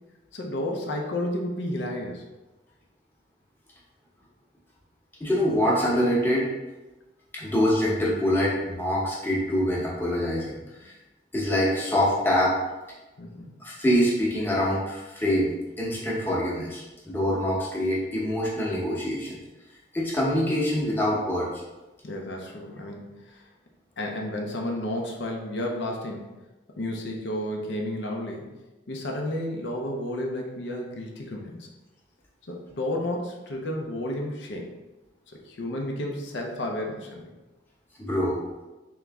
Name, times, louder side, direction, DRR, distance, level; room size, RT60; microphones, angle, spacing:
voice 1, 0.3-2.2 13.2-13.5 22.0-23.4 24.0-26.3 26.8-28.5 28.9-31.7 32.5-34.7 35.3-37.3, left 1 dB, 80° left, 0 dB, 0.6 m, -32 dB
voice 2, 5.2-6.5 7.3-10.9 11.3-12.5 13.6-15.5 15.8-19.4 19.9-21.5 38.0-38.4, equal, 10° left, -6 dB, 0.8 m, -25 dB
3.5 x 3.0 x 3.5 m, 1.1 s
head